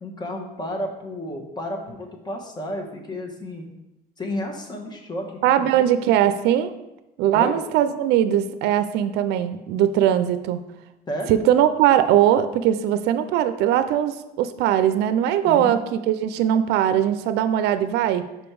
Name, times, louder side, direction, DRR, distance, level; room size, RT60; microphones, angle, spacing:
voice 1, 0.0-3.7 4.2-5.9 7.3-7.6 11.1-11.4 15.4-15.7, left 1 dB, 25° left, 2 dB, 1.3 m, -32 dB
voice 2, 5.4-6.7 7.2-10.6 11.3-18.2, right 10 dB, 85° right, 12 dB, 0.4 m, -20 dB
5.4 x 5.2 x 4.6 m, 0.96 s
cardioid pair, 110°, 17 cm